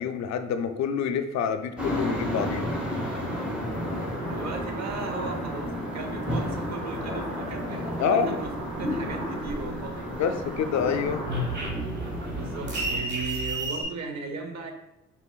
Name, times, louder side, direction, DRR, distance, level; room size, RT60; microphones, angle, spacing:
voice 1, 0.0-2.7 8.0-8.4 10.2-11.2, left 7 dB, 65° left, 9 dB, 0.4 m, -27 dB
sound 1, 1.8-13.0, equal, 5° right, 1.2 m, -33 dB
sound 2, 3.6-11.6, right 1 dB, 85° right, 1.5 m, -39 dB
voice 2, 4.2-8.5 8.8-10.1 12.3-14.7, right 4 dB, 60° right, 5 dB, 0.7 m, -36 dB
sound 3, 8.4-10.1 10.5-13.8, right 1 dB, 35° right, 1.2 m, -32 dB
4.1 x 4.0 x 2.2 m, 0.92 s
cardioid pair, 90°, 30 cm